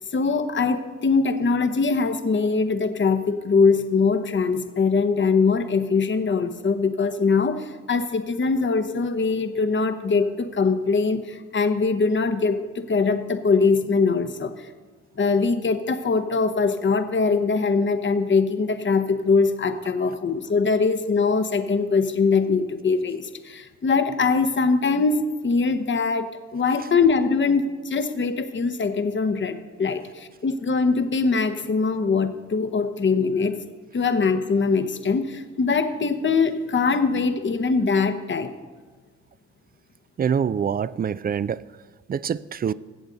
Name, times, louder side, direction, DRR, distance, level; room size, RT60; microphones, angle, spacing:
voice 1, 0.1-14.7 15.2-33.6 33.9-38.5, left 4 dB, 40° left, 9 dB, 0.9 m, -22 dB
voice 2, 40.2-41.6 42.1-42.7, right 7 dB, 30° right, 18 dB, 0.4 m, -25 dB
15.0 x 8.0 x 3.9 m, 1.4 s
supercardioid pair, 50°, 31 cm